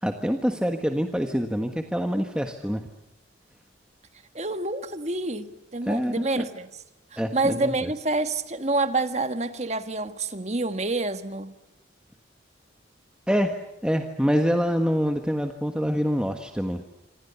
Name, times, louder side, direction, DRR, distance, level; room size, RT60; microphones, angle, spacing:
voice 1, 0.0-2.9 5.8-6.5 7.2-7.9 13.3-13.5 13.8-16.8, equal, 5° right, 1.4 m, -26 dB
voice 2, 4.3-6.7 7.1-11.5, right 2 dB, 35° right, 1.6 m, -28 dB
26.5 x 26.5 x 7.0 m
head